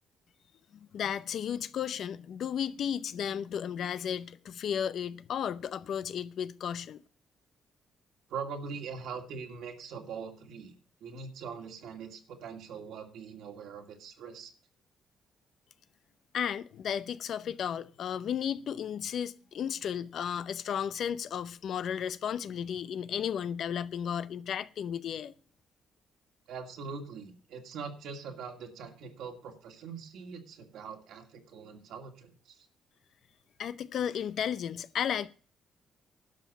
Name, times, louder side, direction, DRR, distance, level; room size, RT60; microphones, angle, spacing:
voice 1, 0.7-7.0 16.3-25.3 33.6-35.3, left 8 dB, 65° left, 0.7 m, -34 dB
voice 2, 8.3-10.7 11.0-14.5 26.5-32.7, right 5 dB, 80° right, 2.3 m, -42 dB
11.5 x 5.8 x 8.3 m
cardioid pair, 90°, 0 cm